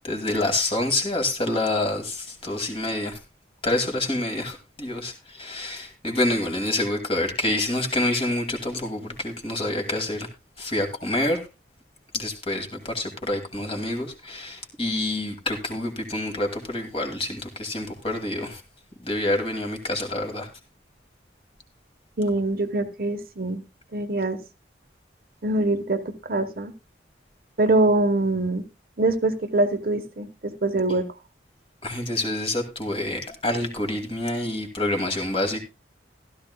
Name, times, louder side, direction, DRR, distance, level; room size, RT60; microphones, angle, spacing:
voice 1, 0.0-3.2 3.6-10.3 10.6-11.5 12.1-18.6 19.0-20.5 31.8-35.6, left 1 dB, 30° left, 2.2 m, -27 dB
voice 2, 22.2-23.6 23.9-24.4 25.4-26.7 27.6-28.6 29.0-31.0, right 2 dB, 55° right, 1.0 m, -24 dB
15.5 x 13.0 x 2.2 m
head